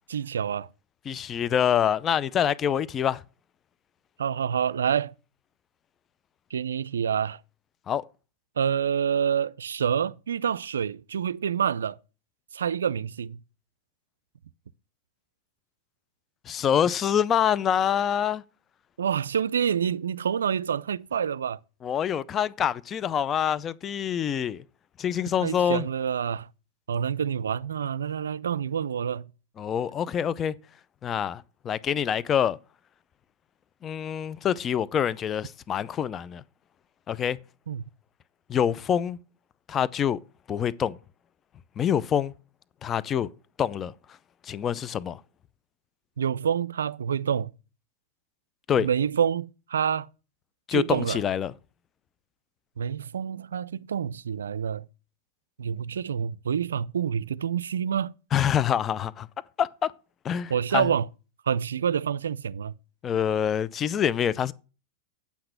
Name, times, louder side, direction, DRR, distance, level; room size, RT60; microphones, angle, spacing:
voice 1, 0.1-0.7 4.2-5.1 6.5-7.4 8.6-12.0 12.5-13.4 19.0-21.6 25.4-26.5 26.9-29.3 37.7-37.8 46.2-47.5 48.8-50.1 50.7-51.2 52.8-54.9 55.6-58.1 60.5-61.1 61.5-62.7, right 8 dB, 85° right, 0.4 m, -27 dB
voice 2, 1.1-3.2 7.9-8.0 16.5-18.4 21.8-24.6 25.0-25.8 29.6-30.5 31.0-32.6 33.8-36.4 37.1-37.4 38.5-39.2 39.7-40.2 40.5-41.0 41.8-42.3 42.8-43.3 43.6-43.9 44.5-45.2 48.7-48.9 50.7-51.5 58.3-59.3 59.6-59.9 60.2-60.9 63.0-64.5, left 9 dB, 30° left, 0.5 m, -26 dB
8.5 x 5.9 x 6.6 m
hypercardioid pair, 105°, 0 cm